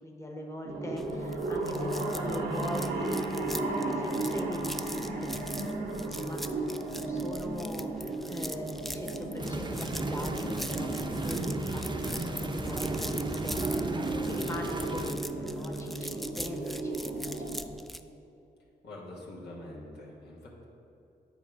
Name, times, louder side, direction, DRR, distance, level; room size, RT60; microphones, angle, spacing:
voice 1, 0.0-5.4 6.1-10.9 11.2-11.4 11.7-17.7, left 1 dB, 15° left, 1 dB, 1.1 m, -42 dB
sound 1, 0.6-17.6, right 2 dB, 80° right, 1.0 m, -35 dB
sound 2, 1.0-18.0, equal, ahead, 0.4 m, -43 dB
sound 3, 9.4-15.1, right 2 dB, 25° right, 0.7 m, -35 dB
voice 2, 18.8-20.6, left 1 dB, 80° left, -4 dB, 1.4 m, -45 dB
8.5 x 3.7 x 4.7 m, 2.7 s
supercardioid pair, 45°, 17 cm